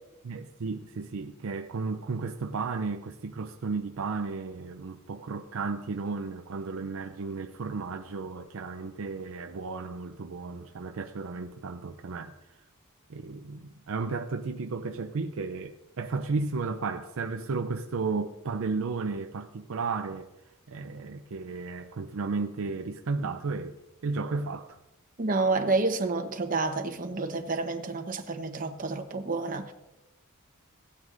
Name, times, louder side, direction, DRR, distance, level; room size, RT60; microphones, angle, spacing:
voice 1, 0.2-12.3 13.1-20.3 20.7-24.8, right 4 dB, 70° right, 0.5 m, -34 dB
voice 2, 25.2-29.7, right 3 dB, 40° right, 1.0 m, -29 dB
17.0 x 9.3 x 2.6 m
head